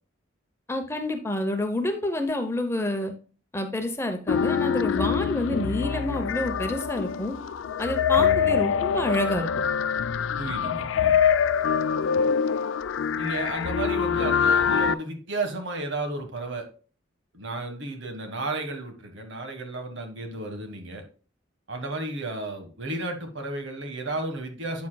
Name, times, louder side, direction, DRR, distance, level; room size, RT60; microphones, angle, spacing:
voice 1, 0.7-3.1 3.5-7.3 7.8-9.5, left 1 dB, 15° left, 5 dB, 0.7 m, -28 dB
sound 1, 4.3-14.9, left 7 dB, 80° left, 0.4 m, -24 dB
voice 2, 10.4-11.2 13.2-16.7 17.3-21.0 21.7-24.9, right 2 dB, 70° right, 5 dB, 1.5 m, -33 dB
8.2 x 7.4 x 2.3 m, 0.38 s
head